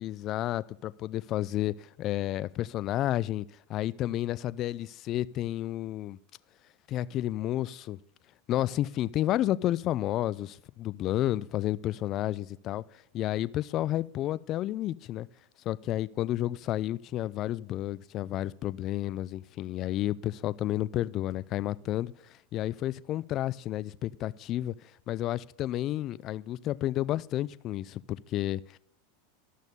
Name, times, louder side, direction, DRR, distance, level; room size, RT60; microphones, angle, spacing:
voice 1, 0.0-6.2 6.9-8.0 8.5-15.3 15.6-28.8, left 14 dB, 45° left, 0.4 m, -31 dB
13.0 x 6.3 x 5.3 m
hypercardioid pair, 100°, 0 cm